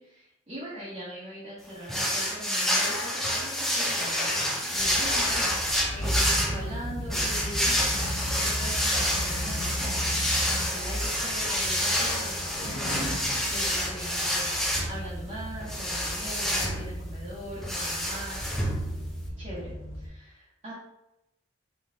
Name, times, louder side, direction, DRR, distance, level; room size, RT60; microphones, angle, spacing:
voice 1, 0.0-4.4 4.7-10.0 10.5-18.5 19.4-20.7, right 1 dB, 35° right, -10 dB, 1.1 m, -41 dB
sound 1, 1.9-19.3, equal, ahead, 0.5 m, -28 dB
sound 2, 4.7-20.1, equal, 75° left, 1.0 m, -36 dB
5.8 x 3.2 x 2.2 m, 0.89 s
head